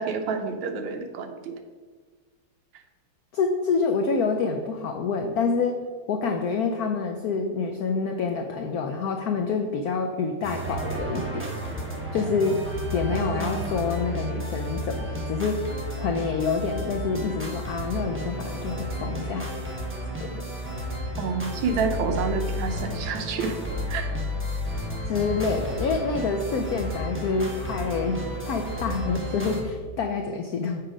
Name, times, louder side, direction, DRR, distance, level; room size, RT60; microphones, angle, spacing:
voice 1, 0.0-1.5 13.1-13.7 21.2-23.5 23.9-24.1, right 5 dB, 75° right, 6 dB, 1.5 m, -29 dB
voice 2, 3.3-5.8 6.1-11.5 12.1-12.6 12.9-15.6 16.0-19.5 20.2-20.4 25.1-30.8, left 4 dB, 85° left, 4 dB, 0.8 m, -27 dB
sound 1, 10.4-29.6, equal, 15° right, 0.4 m, -32 dB
7.2 x 4.7 x 5.0 m, 1.5 s
omnidirectional pair, 2.3 m